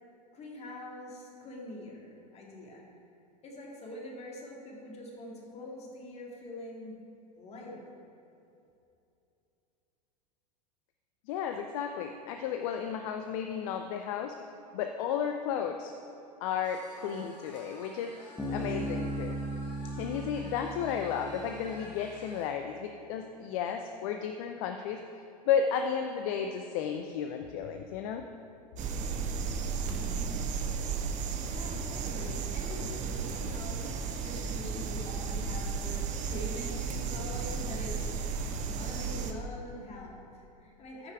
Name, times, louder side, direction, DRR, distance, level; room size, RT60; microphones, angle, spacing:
voice 1, 0.3-2.8 3.4-7.0 7.4-7.9 31.5-38.4 38.7-41.1, left 1 dB, 30° left, -1 dB, 2.2 m, -44 dB
voice 2, 11.3-14.3 14.7-15.9 16.4-19.4 20.0-25.0 25.4-28.2, left 7 dB, 55° left, 5 dB, 0.6 m, -33 dB
sound 1, 16.6-22.5, left 1 dB, 85° left, 2.2 m, -51 dB
Bass guitar, 18.4-22.0, right 1 dB, 5° left, 1.8 m, -37 dB
sound 2, 28.8-39.3, right 5 dB, 35° right, 0.8 m, -34 dB
13.5 x 5.6 x 4.7 m, 2.8 s
figure-of-eight pair, 90°, 21 cm